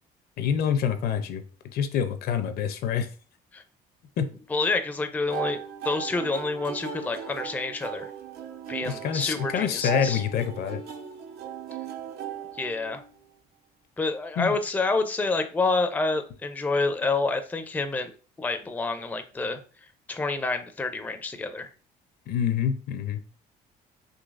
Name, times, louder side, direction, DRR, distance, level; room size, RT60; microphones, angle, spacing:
voice 1, 0.4-3.1 4.2-4.3 8.8-10.8 14.4-14.6 22.3-23.2, left 8 dB, 65° left, 9 dB, 0.5 m, -27 dB
voice 2, 4.5-5.6 5.8-8.1 8.7-10.2 12.6-13.0 14.0-18.1 18.4-19.6 20.1-21.7, left 3 dB, 10° left, 8 dB, 0.4 m, -28 dB
sound 1, 5.3-13.2, right 9 dB, 75° right, 0.6 m, -38 dB
3.9 x 2.7 x 2.4 m, 0.38 s
cardioid pair, 110°, 17 cm